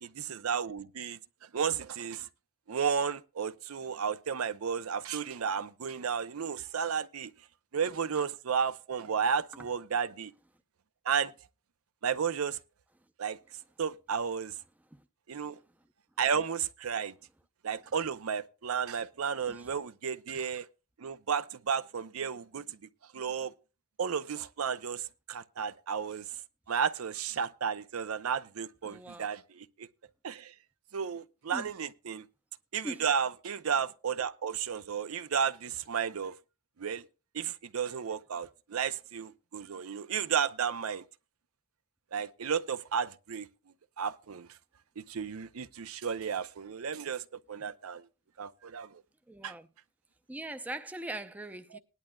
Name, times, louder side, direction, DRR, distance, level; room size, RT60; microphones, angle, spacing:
voice 1, 0.0-2.3 2.7-7.3 7.7-10.3 11.0-11.3 12.0-12.6 13.2-13.4 13.8-14.6 15.3-15.6 16.2-17.1 17.6-20.7 21.0-22.8 23.1-23.5 24.0-26.3 26.7-29.9 30.2-30.5 30.9-32.3 32.7-36.3 36.8-37.1 37.3-41.0 42.1-43.5 44.0-44.6 45.0-48.1 48.4-49.0 49.4-49.5 51.7-51.8, right 7 dB, 80° right, 0.6 m, -33 dB
voice 2, 28.8-29.3 31.5-31.7 32.8-33.0 49.3-49.7 50.3-51.8, right 1 dB, 5° right, 0.5 m, -41 dB
19.0 x 11.0 x 2.3 m
head